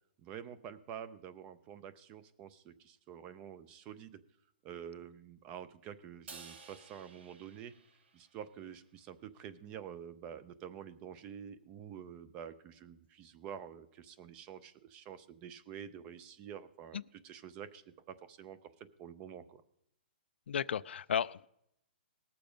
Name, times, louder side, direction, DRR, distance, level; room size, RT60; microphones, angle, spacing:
voice 1, 0.2-4.2 4.6-7.7 8.1-19.6, right 8 dB, 20° right, 15 dB, 0.4 m, -48 dB
Crash cymbal, 6.3-8.7, right 4 dB, 90° right, 1.7 m, -54 dB
voice 2, 20.5-21.5, left 8 dB, 80° left, 17 dB, 0.4 m, -34 dB
19.0 x 6.9 x 5.1 m, 0.76 s
hypercardioid pair, 170°, 6 cm